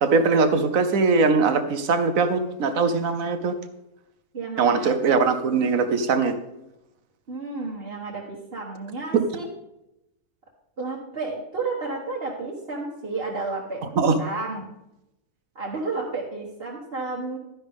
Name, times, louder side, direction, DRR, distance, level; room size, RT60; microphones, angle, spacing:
voice 1, 0.0-3.5 4.6-6.3 9.1-9.2 14.0-14.2, right 4 dB, 65° right, 9 dB, 1.3 m, -21 dB
voice 2, 4.3-4.9 7.3-9.5 10.8-13.8 14.2-14.7 15.5-17.4, right 3 dB, 40° right, -4 dB, 1.6 m, -31 dB
12.0 x 10.0 x 3.6 m, 0.90 s
omnidirectional pair, 1.5 m